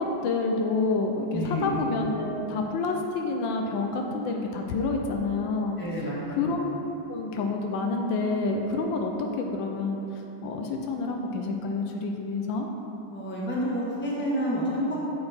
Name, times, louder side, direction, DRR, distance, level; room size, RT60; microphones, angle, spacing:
voice 1, 0.0-5.8 6.3-10.0 10.4-12.7, left 3 dB, 80° left, 2 dB, 1.4 m, -28 dB
voice 2, 1.3-1.7 5.8-6.5 13.1-15.0, equal, 5° left, -6 dB, 1.0 m, -29 dB
7.6 x 5.8 x 4.3 m, 2.9 s
omnidirectional pair, 2.1 m